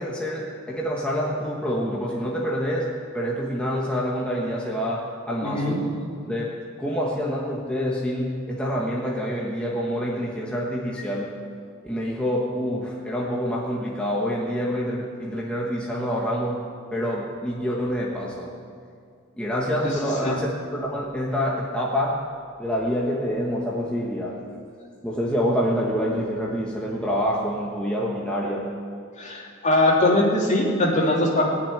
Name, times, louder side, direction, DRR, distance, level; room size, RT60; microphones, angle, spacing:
voice 1, 0.0-5.9 6.3-11.3 11.8-16.6 16.9-18.5 19.4-22.2 22.6-24.4 25.0-28.7, equal, 5° left, -5 dB, 1.4 m, -27 dB
voice 2, 5.4-5.8 20.2-20.4 29.2-31.4, left 1 dB, 35° left, -3 dB, 3.2 m, -21 dB
19.0 x 7.1 x 10.0 m, 2.3 s
head